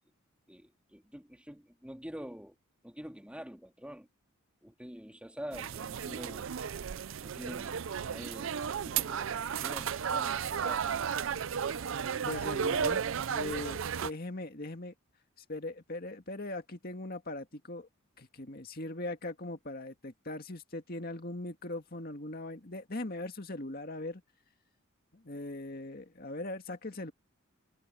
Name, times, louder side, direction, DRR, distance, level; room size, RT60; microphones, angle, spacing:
voice 1, 0.5-2.5 2.8-4.1 4.6-6.5 7.2-8.6 8.8-10.9, equal, 5° right, 2.3 m, -46 dB
sound 1, 5.5-14.1, right 7 dB, 65° right, 0.5 m, -34 dB
voice 2, 12.3-13.0 13.3-14.9 15.5-17.9 18.2-24.2 25.1-27.1, left 2 dB, 45° left, 2.1 m, -40 dB
head